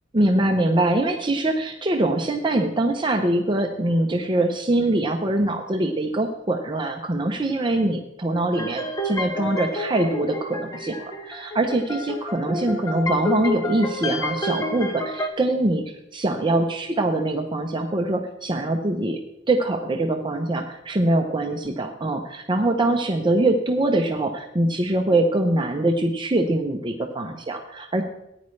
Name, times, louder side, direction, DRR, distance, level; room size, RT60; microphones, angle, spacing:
voice 1, 0.1-15.8 16.1-19.2 19.5-28.0, right 2 dB, 25° right, 3 dB, 0.7 m, -23 dB
sound 1, 8.5-15.3, left 1 dB, 20° left, 1.1 m, -29 dB
14.0 x 9.6 x 3.2 m, 0.84 s
head